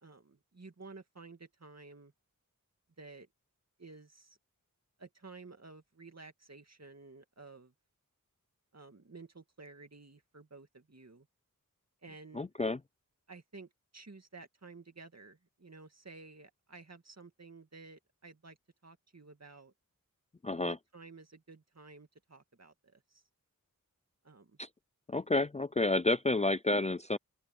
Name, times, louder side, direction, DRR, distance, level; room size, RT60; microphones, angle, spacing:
voice 1, 0.0-2.1 3.0-3.3 3.8-4.4 5.0-7.7 8.7-11.3 12.0-12.5 13.3-18.6 18.8-19.7 20.5-23.2 24.2-24.6, right 3 dB, 50° right, 2.3 m, -53 dB
voice 2, 12.3-12.8 20.4-20.8 24.6-24.7 25.1-27.2, left 2 dB, 20° left, 0.4 m, -30 dB
open air
wide cardioid pair, 65°, 33 cm